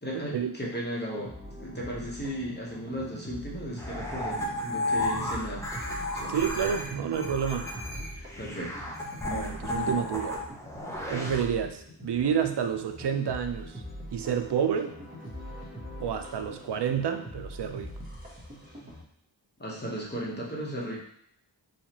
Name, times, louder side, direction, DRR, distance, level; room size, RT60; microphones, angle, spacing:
voice 1, 0.0-1.3 1.6-5.7 6.1-6.3 8.4-8.8 19.6-21.0, equal, 20° left, -4 dB, 1.0 m, -35 dB
sound 1, 1.2-19.0, equal, 20° right, 1.1 m, -43 dB
sound 2, 3.8-11.4, left 1 dB, 5° left, 0.6 m, -33 dB
voice 2, 6.3-7.7 9.3-10.5 11.1-13.8 14.1-14.9 16.0-17.9, right 8 dB, 60° right, 6 dB, 0.5 m, -29 dB
4.2 x 2.3 x 2.9 m, 0.72 s
wide cardioid pair, 65°, 47 cm